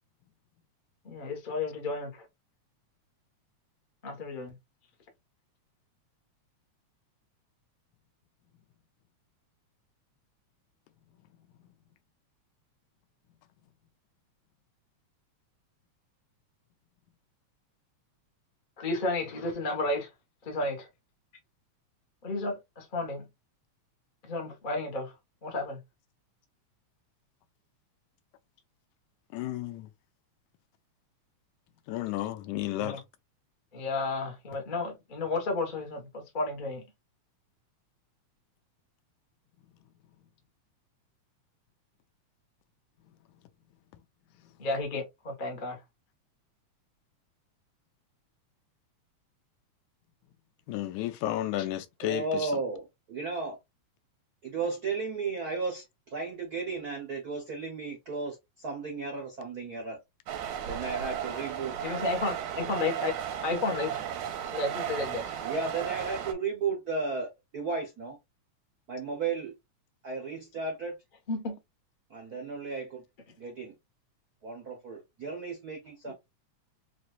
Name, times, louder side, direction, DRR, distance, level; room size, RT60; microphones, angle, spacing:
voice 1, 1.0-2.2 4.0-4.5 18.8-20.1 20.4-20.9 22.2-23.3 24.2-25.1 25.4-25.8 32.8-33.0 33.7-36.8 44.6-45.8 61.8-63.1 63.4-64.0 64.5-65.3 71.3-71.6 76.0-76.1, left 3 dB, 60° left, 0.5 m, -32 dB
voice 2, 29.3-29.9 31.9-33.0 50.7-52.5, left 13 dB, 85° left, 2.0 m, -32 dB
voice 3, 52.0-53.6 54.4-55.8 56.1-60.0 60.7-61.8 65.4-68.2 68.9-69.5 70.0-71.0 72.1-73.0 73.4-73.7 74.4-76.1, right 4 dB, 70° right, 0.8 m, -34 dB
sound 1, 60.3-66.3, right 9 dB, 85° right, 2.3 m, -35 dB
5.9 x 2.5 x 2.4 m
omnidirectional pair, 3.3 m